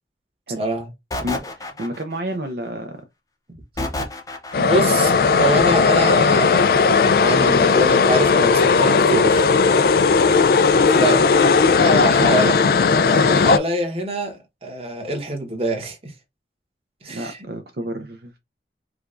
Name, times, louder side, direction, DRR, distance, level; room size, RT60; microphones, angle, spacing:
voice 1, 0.6-0.9 4.5-9.5 11.0-11.2 11.7-12.5 13.1-16.1 17.0-17.4, right 1 dB, 35° right, 1.2 m, -25 dB
sound 1, 1.1-2.4 3.8-4.9, left 2 dB, 20° left, 0.7 m, -29 dB
voice 2, 1.2-3.0 3.8-4.1 10.9-11.3 12.0-12.7 17.1-18.4, right 1 dB, 60° right, 0.5 m, -31 dB
sound 2, 4.5-13.6, left 4 dB, 55° left, 0.3 m, -16 dB
4.8 x 2.3 x 2.5 m
head